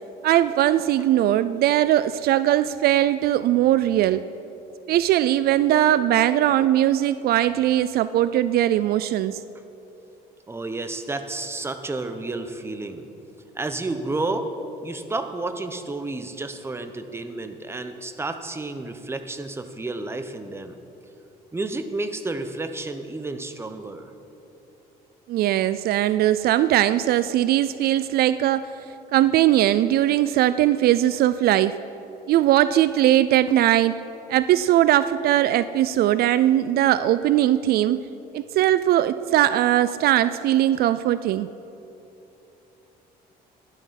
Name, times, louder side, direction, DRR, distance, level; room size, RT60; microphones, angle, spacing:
voice 1, 0.2-4.2 4.9-9.4 25.3-28.7 29.1-31.8 32.3-34.0 34.3-38.0 38.3-41.5, right 13 dB, 65° right, 14 dB, 0.4 m, -20 dB
voice 2, 10.5-13.1 13.6-14.5 14.8-20.8 21.5-24.1, right 2 dB, 15° right, 8 dB, 0.9 m, -31 dB
12.0 x 11.5 x 5.8 m, 2.9 s
cardioid pair, 110°, 17 cm